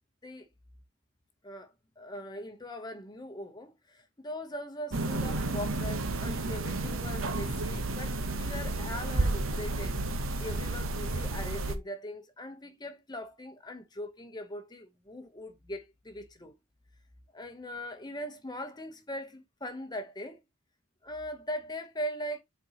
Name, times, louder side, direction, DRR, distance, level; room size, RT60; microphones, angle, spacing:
voice 1, 1.4-16.6 17.3-20.4 21.0-22.4, equal, 20° left, 0.9 m, -41 dB
sound 1, 4.9-11.8, right 2 dB, 65° right, 0.9 m, -31 dB
7.7 x 4.4 x 2.9 m
head